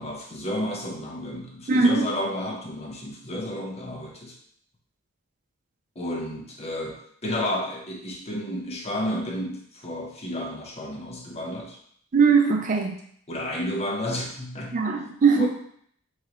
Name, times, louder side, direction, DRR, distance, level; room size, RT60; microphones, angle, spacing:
voice 1, 0.0-4.4 6.0-11.8 13.3-14.8 15.4-15.5, left 1 dB, 30° left, -1 dB, 0.7 m, -31 dB
voice 2, 1.7-2.1 12.1-13.0 14.7-15.5, right 5 dB, 40° right, 3 dB, 0.4 m, -20 dB
3.7 x 3.1 x 3.0 m, 0.64 s
head